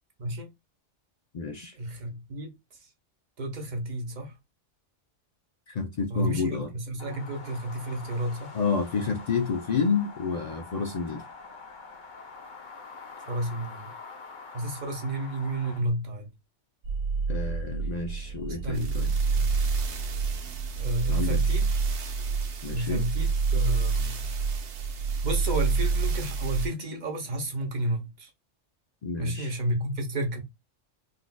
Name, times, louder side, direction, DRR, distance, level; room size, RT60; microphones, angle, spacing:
voice 1, 0.2-0.5 1.7-2.5 3.4-4.3 6.1-8.5 13.3-13.9 14.5-16.3 18.6-19.5 20.8-21.7 22.7-24.2 25.2-28.3 29.2-30.4, right 1 dB, 45° right, 0.8 m, -31 dB
voice 2, 1.3-1.7 5.7-6.7 8.5-11.2 17.3-19.1 21.1-21.4 22.6-23.0 29.0-29.5, left 5 dB, 65° left, 0.4 m, -29 dB
sound 1, 7.0-15.8, left 4 dB, 45° left, 0.8 m, -45 dB
sound 2, 16.8-26.7, right 4 dB, 70° right, 1.0 m, -27 dB
3.9 x 2.4 x 2.2 m
omnidirectional pair, 1.3 m